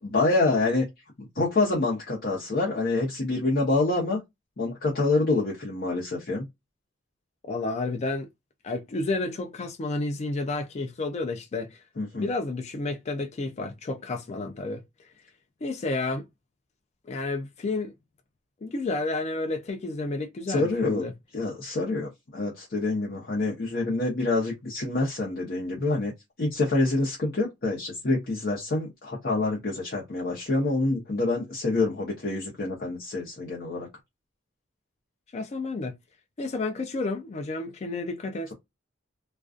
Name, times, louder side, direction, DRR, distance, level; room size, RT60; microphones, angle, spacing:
voice 1, 0.0-0.8 1.3-4.2 4.6-6.5 12.0-12.3 20.5-21.1 21.3-26.1 26.4-33.9, left 2 dB, 50° left, 0.7 m, -26 dB
voice 2, 7.5-8.3 8.6-11.8 12.2-14.8 15.6-16.2 17.1-17.9 18.6-21.1 35.3-35.9 36.4-38.5, left 2 dB, 35° left, 0.3 m, -31 dB
2.3 x 2.2 x 2.4 m
head